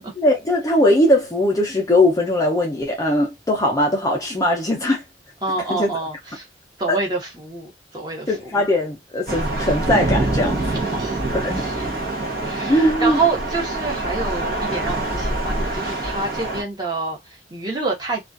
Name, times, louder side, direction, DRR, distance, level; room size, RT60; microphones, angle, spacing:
voice 1, 0.2-5.0 5.7-5.9 6.9-7.0 8.3-10.6 11.3-11.6 12.4-13.2, left 1 dB, 20° left, 0.5 m, -20 dB
voice 2, 5.4-6.5 6.8-8.6 10.9-11.9 12.4-17.2 17.5-18.2, right 3 dB, 25° right, 0.9 m, -27 dB
Thunder / Rain, 9.3-16.6, right 2 dB, 55° right, 0.9 m, -25 dB
2.3 x 2.3 x 2.5 m
head